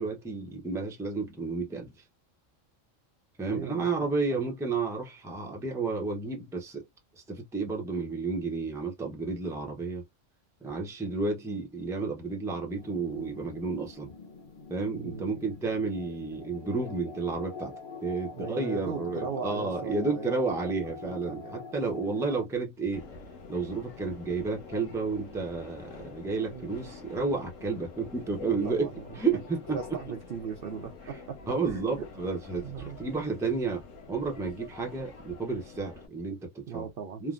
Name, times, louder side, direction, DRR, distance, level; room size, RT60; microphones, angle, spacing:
voice 1, 0.0-1.9 3.4-6.8 7.3-10.0 10.6-14.1 14.7-17.7 18.0-23.1 23.5-29.8 31.1-31.2 31.5-36.9 37.2-37.3, right 4 dB, 5° right, 0.5 m, -31 dB
voice 2, 3.5-4.5 14.9-15.3 18.3-20.3 21.0-21.5 26.5-26.9 28.4-29.1 29.7-30.9 31.7-32.1 32.6-33.0 36.7-37.2, right 6 dB, 65° right, 0.6 m, -39 dB
sound 1, 12.8-22.5, left 4 dB, 45° left, 0.9 m, -44 dB
Subway metro underground, 22.9-36.1, left 3 dB, 75° left, 1.2 m, -46 dB
3.3 x 2.1 x 2.4 m
omnidirectional pair, 1.4 m